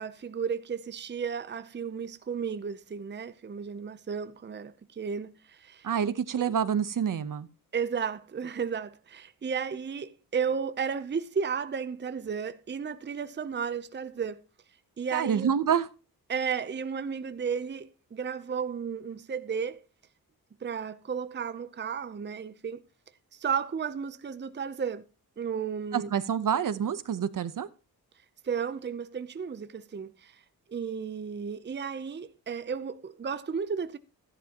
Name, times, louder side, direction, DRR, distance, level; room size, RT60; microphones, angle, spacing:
voice 1, 0.0-5.9 6.4-6.5 7.7-14.4 15.0-15.5 16.3-19.8 20.6-22.8 23.3-25.0 25.4-26.1 28.4-30.4 30.7-34.0, right 6 dB, 30° right, 0.7 m, -33 dB
voice 2, 5.8-7.5 15.1-15.9 25.9-27.7, right 8 dB, 60° right, 0.9 m, -27 dB
13.0 x 11.0 x 3.0 m
cardioid pair, 90°, 37 cm